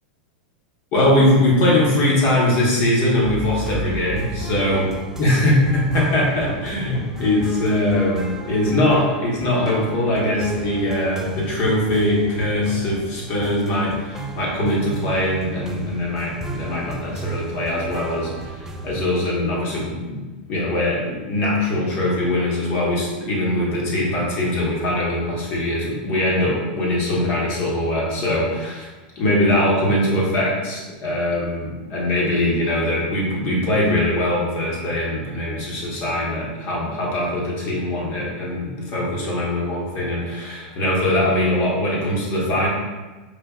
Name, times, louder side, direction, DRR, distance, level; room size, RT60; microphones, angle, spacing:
voice 1, 0.9-4.8 5.2-20.2 20.5-28.9 29.1-42.7, left 1 dB, 45° left, -4 dB, 1.2 m, -21 dB
sound 1, 3.2-19.3, right 3 dB, 10° right, 0.3 m, -34 dB
4.9 x 2.5 x 2.4 m, 1.2 s
supercardioid pair, 135°, 5 cm